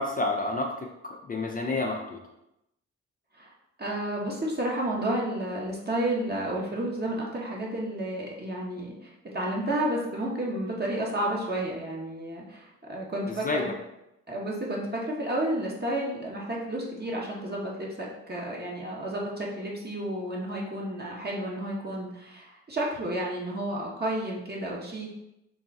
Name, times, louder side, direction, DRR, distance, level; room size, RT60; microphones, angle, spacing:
voice 1, 0.0-2.2 13.3-13.7, left 2 dB, 25° left, 0 dB, 0.6 m, -30 dB
voice 2, 3.8-13.7 14.3-25.1, right 1 dB, 30° right, -3 dB, 1.4 m, -31 dB
3.9 x 2.2 x 4.1 m, 0.87 s
hypercardioid pair, 45°, 32 cm